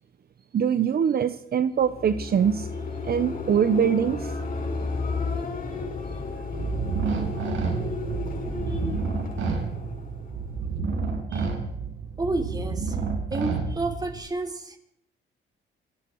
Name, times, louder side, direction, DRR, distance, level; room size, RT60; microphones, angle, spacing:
voice 1, 0.5-2.7 3.0-4.4 6.4-6.5 7.5-7.6, right 8 dB, 50° right, 11 dB, 1.0 m, -23 dB
sound 1, 1.8-10.8, left 3 dB, 45° left, 6.8 m, -33 dB
sound 2, 6.5-14.2, right 4 dB, 75° right, 6.4 m, -30 dB
voice 2, 12.2-13.0 13.3-14.8, right 2 dB, 20° right, 5 dB, 4.0 m, -30 dB
27.5 x 20.0 x 4.8 m, 0.72 s
cardioid pair, 90°, 20 cm